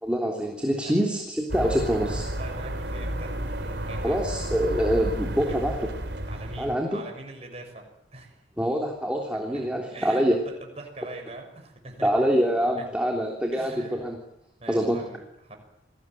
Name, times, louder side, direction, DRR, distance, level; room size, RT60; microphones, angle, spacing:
voice 1, 0.0-2.3 4.0-5.8 6.6-7.0 8.6-10.4 12.0-14.2 14.7-15.0, equal, 5° right, 1 dB, 3.4 m, -25 dB
sound 1, 1.5-6.8, right 1 dB, 65° right, 3.5 m, -31 dB
voice 2, 2.4-4.3 5.5-5.8 6.3-8.4 9.5-12.3 12.8-12.9 13.5-14.1 14.6-15.6, right 2 dB, 35° right, 3 dB, 6.4 m, -43 dB
29.0 x 20.5 x 9.2 m, 0.81 s
head